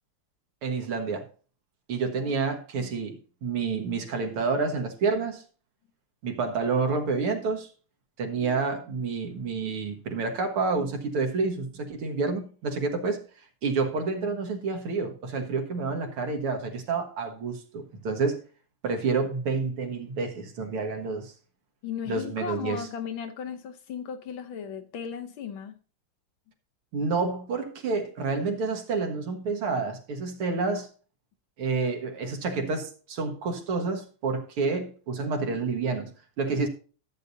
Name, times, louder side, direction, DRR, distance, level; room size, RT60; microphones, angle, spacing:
voice 1, 0.6-1.3 1.9-5.4 6.2-7.7 8.2-18.4 18.8-21.3 22.1-22.9 26.9-30.9 31.6-36.7, right 4 dB, 85° right, 2.3 m, -29 dB
voice 2, 8.3-8.6 21.8-25.8, left 7 dB, 70° left, 1.7 m, -36 dB
14.0 x 8.1 x 2.7 m
omnidirectional pair, 2.4 m